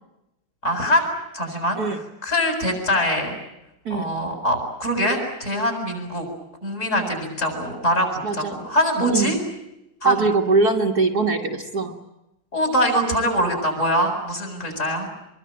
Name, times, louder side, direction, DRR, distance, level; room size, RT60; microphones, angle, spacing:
voice 1, 0.6-1.8 2.2-3.3 3.9-6.3 6.6-9.4 10.0-10.2 12.5-15.1, equal, 35° left, 4 dB, 8.2 m, -23 dB
voice 2, 8.2-8.6 9.1-9.3 10.0-12.0, right 3 dB, 50° right, 2 dB, 2.0 m, -22 dB
25.0 x 23.5 x 8.8 m, 0.92 s
omnidirectional pair, 2.3 m